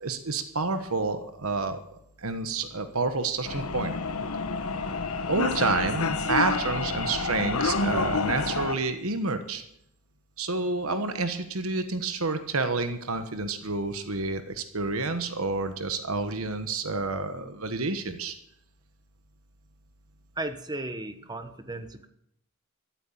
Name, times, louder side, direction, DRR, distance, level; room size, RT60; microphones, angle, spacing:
voice 1, 0.0-4.0 5.3-9.6 10.4-18.3, right 3 dB, 75° right, 9 dB, 1.3 m, -29 dB
sound 1, 3.4-8.8, left 3 dB, 80° left, 1.2 m, -29 dB
voice 2, 20.4-22.1, right 2 dB, 20° right, 9 dB, 1.1 m, -35 dB
14.5 x 9.0 x 9.1 m, 0.76 s
head